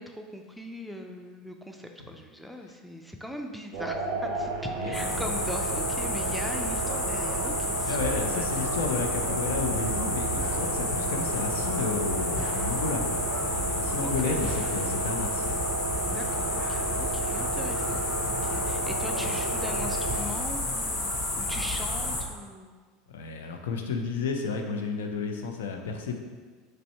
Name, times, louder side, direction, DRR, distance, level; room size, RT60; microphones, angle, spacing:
voice 1, 0.0-8.7 14.0-14.4 16.1-22.7, equal, ahead, 3 dB, 0.4 m, -40 dB
sound 1, 3.7-20.2, right 3 dB, 65° right, 0.4 m, -32 dB
voice 2, 4.8-5.2 7.9-15.6 17.5-17.7 19.2-19.3 23.1-26.2, left 4 dB, 75° left, 3 dB, 0.4 m, -32 dB
sound 2, 4.9-22.2, left 1 dB, 45° left, 1.1 m, -31 dB
3.1 x 2.6 x 4.3 m, 1.5 s
hypercardioid pair, 80°, 0 cm